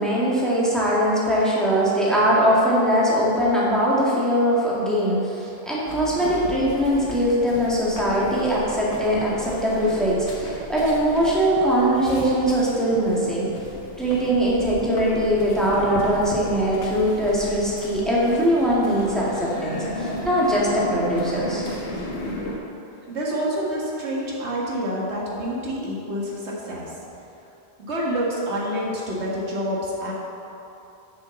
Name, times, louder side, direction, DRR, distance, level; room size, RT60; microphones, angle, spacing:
voice 1, 0.0-13.5 14.0-21.7, equal, ahead, -7 dB, 1.9 m, -21 dB
sound 1, 5.9-22.6, left 1 dB, 85° left, 1.5 m, -35 dB
voice 2, 22.9-27.0 27.8-30.1, equal, 85° right, -5 dB, 2.0 m, -28 dB
7.4 x 6.4 x 7.0 m, 2.8 s
omnidirectional pair, 1.1 m